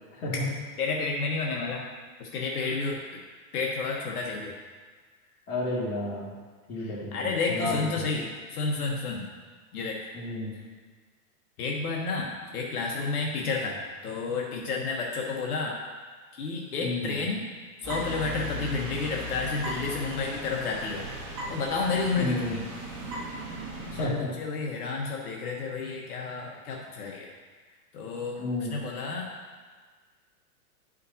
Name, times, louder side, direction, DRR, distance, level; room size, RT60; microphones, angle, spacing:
voice 1, 0.8-1.9 2.2-3.0 3.5-4.5 6.8-9.3 9.7-10.0 11.6-15.8 16.3-17.4 17.8-21.0 21.5-22.6 23.9-27.3 27.9-28.4 28.7-29.3, left 4 dB, 70° left, -1 dB, 1.2 m, -31 dB
voice 2, 5.5-6.3 6.7-7.1 7.5-8.0 10.1-10.5 16.8-17.1 22.2-22.5 24.0-24.3 28.4-28.7, left 2 dB, 25° left, -8 dB, 2.4 m, -31 dB
sound 1, 17.8-24.1, equal, 25° right, 2.1 m, -37 dB
11.5 x 5.1 x 2.8 m, 1.5 s
supercardioid pair, 155°, 46 cm